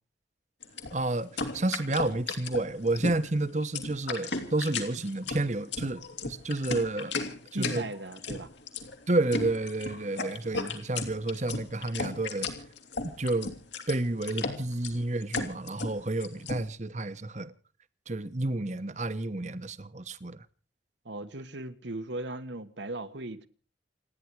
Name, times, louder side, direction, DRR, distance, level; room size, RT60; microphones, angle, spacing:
sound 1, 0.6-16.6, left 4 dB, 75° left, 2.9 m, -35 dB
voice 1, 0.9-7.1 7.5-7.8 9.1-12.5 13.0-13.5 13.9-17.5 18.1-20.4, right 2 dB, 40° right, 1.0 m, -30 dB
voice 2, 7.5-8.5 14.7-14.8 21.0-23.5, right 2 dB, 75° right, 1.4 m, -37 dB
29.0 x 10.0 x 4.7 m
head